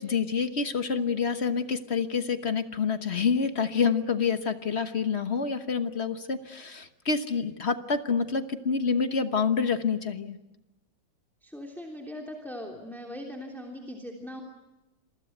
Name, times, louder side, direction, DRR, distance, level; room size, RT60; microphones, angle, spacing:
voice 1, 0.0-10.4, left 5 dB, 40° left, 9 dB, 1.2 m, -27 dB
voice 2, 11.4-14.4, left 1 dB, ahead, 0 dB, 3.0 m, -40 dB
27.5 x 23.5 x 8.0 m, 0.99 s
omnidirectional pair, 2.1 m